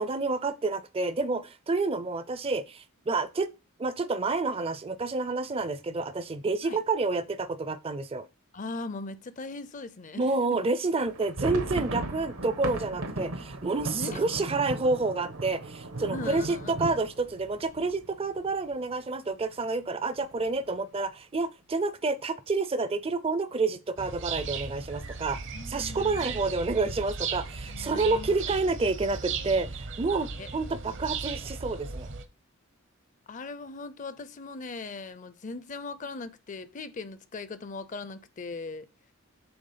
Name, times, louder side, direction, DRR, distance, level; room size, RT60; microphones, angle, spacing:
voice 1, 0.0-3.5 3.8-8.3 10.2-25.4 25.7-32.1, right 3 dB, 25° right, 0.4 m, -29 dB
voice 2, 8.5-10.6 13.9-14.2 16.1-16.8 25.5-26.5 27.7-28.4 30.4-30.5 33.3-38.9, left 3 dB, 35° left, 0.5 m, -39 dB
sound 1, 11.0-18.7 19.1-19.2 19.4-19.7 20.2-20.7, right 2 dB, 80° right, 1.2 m, -36 dB
sound 2, 24.0-32.3, right 5 dB, 55° right, 0.8 m, -37 dB
7.9 x 3.4 x 5.5 m
head